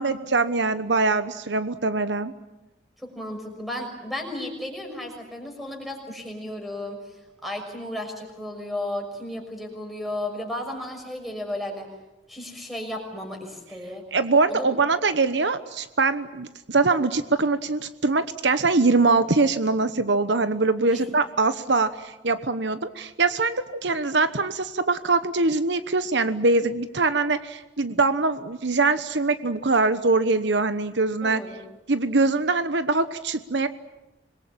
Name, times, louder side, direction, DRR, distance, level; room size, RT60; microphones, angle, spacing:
voice 1, 0.0-2.3 14.1-31.4 31.9-33.7, right 3 dB, 70° right, 11 dB, 1.1 m, -23 dB
voice 2, 3.0-11.9 12.3-14.0 14.5-14.7 20.9-21.0 31.2-31.6, left 1 dB, ahead, 3 dB, 6.0 m, -34 dB
26.5 x 22.0 x 8.9 m, 0.98 s
head